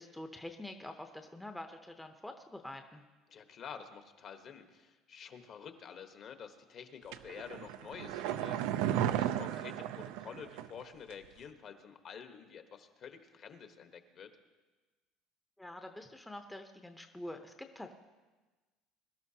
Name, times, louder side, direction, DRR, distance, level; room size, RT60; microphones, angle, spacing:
voice 1, 0.0-3.0 15.6-17.9, left 1 dB, 5° left, 5 dB, 0.7 m, -46 dB
voice 2, 3.3-14.3, left 7 dB, 45° left, 7 dB, 1.2 m, -49 dB
sound 1, 7.1-10.8 11.1-11.2, right 11 dB, 85° right, 0.5 m, -34 dB
22.0 x 12.0 x 2.8 m, 1.2 s
cardioid pair, 130°, 0 cm